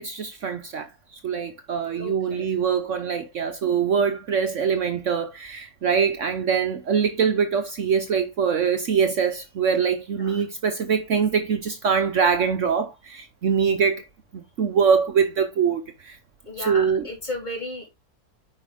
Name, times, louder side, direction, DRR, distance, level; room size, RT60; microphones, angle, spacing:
voice 1, 0.0-14.0 14.3-16.2 16.7-17.0, right 6 dB, 60° right, 1.1 m, -23 dB
voice 2, 2.0-2.5 10.1-10.4 16.4-17.9, left 1 dB, 30° left, 3.3 m, -34 dB
9.4 x 5.0 x 3.6 m
omnidirectional pair, 1.6 m